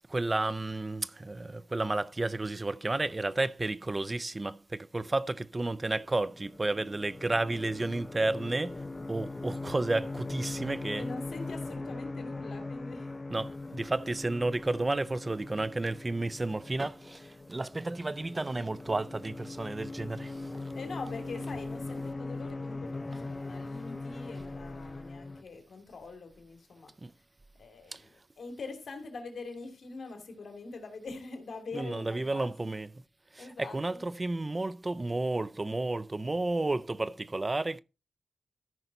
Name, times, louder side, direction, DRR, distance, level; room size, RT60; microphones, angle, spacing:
voice 1, 0.1-8.8 9.1-11.1 13.3-20.7 27.0-27.1 27.9-28.0 31.7-32.9 33.3-37.8, right 2 dB, 30° right, 0.4 m, -32 dB
sound 1, 6.0-25.4, left 3 dB, 30° left, 0.6 m, -40 dB
voice 2, 11.0-13.1 20.7-26.9 27.6-32.5 33.4-34.1, left 3 dB, 70° left, 2.5 m, -44 dB
14.0 x 5.6 x 4.0 m
cardioid pair, 75°, 0 cm